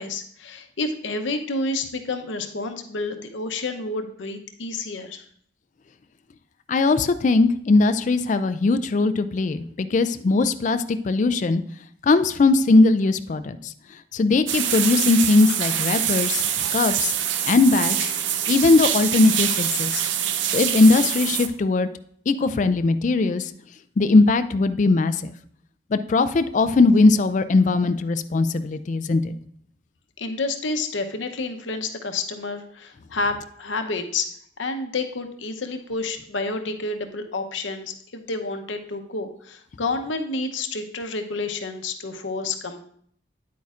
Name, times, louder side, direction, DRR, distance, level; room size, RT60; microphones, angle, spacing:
voice 1, 0.0-5.2 30.2-34.3 34.6-42.8, left 3 dB, 85° left, 6 dB, 0.8 m, -29 dB
voice 2, 6.7-11.6 12.0-13.7 14.1-16.4 16.7-17.1 17.4-18.0 18.5-20.0 20.5-21.9 22.3-23.5 24.0-25.3 25.9-29.3, left 3 dB, 40° left, 11 dB, 0.3 m, -19 dB
sound 1, 14.5-21.5, right 9 dB, 75° right, 0.6 m, -25 dB
9.3 x 8.4 x 2.4 m, 0.63 s
head